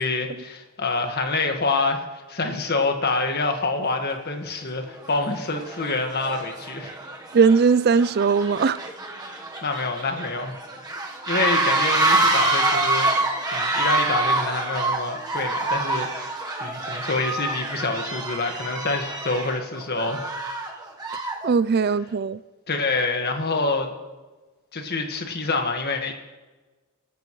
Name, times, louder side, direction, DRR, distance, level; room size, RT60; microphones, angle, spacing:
voice 1, 0.0-6.9 9.3-10.6 11.3-20.3 22.7-23.9 24.7-26.1, left 3 dB, 50° left, 1.7 m, -27 dB
sound 1, 4.1-4.2 4.9-5.2 5.5-21.5, right 2 dB, 20° right, 1.3 m, -26 dB
voice 2, 7.3-8.8 21.4-22.4, right 5 dB, 50° right, 0.4 m, -19 dB
24.0 x 12.0 x 3.2 m
head